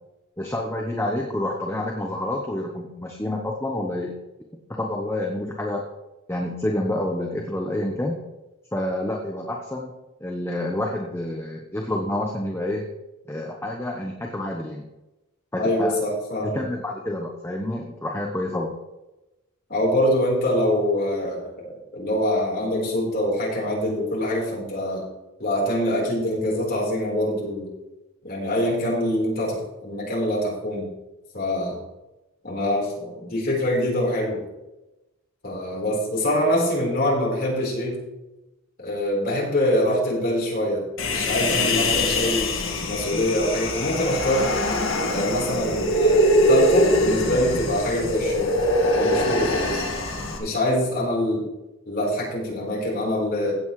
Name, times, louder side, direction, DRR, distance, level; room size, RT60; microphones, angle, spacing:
voice 1, 0.4-4.1 4.7-5.8 6.3-8.2 8.7-9.9 10.2-12.8 13.3-14.9 15.5-16.0 16.4-18.8, left 1 dB, 10° left, 1 dB, 0.9 m, -28 dB
voice 2, 15.6-16.6 19.7-25.0 25.4-27.7 28.2-30.8 31.3-31.8 32.4-34.4 35.4-38.0 38.8-42.5 42.9-44.5 45.1-48.6 48.9-49.8 50.4-51.5 51.9-53.6, left 1 dB, 45° left, -4 dB, 4.2 m, -24 dB
Human voice, 41.0-50.4, left 1 dB, 65° left, 1.9 m, -23 dB
16.0 x 8.0 x 3.2 m, 1.0 s
head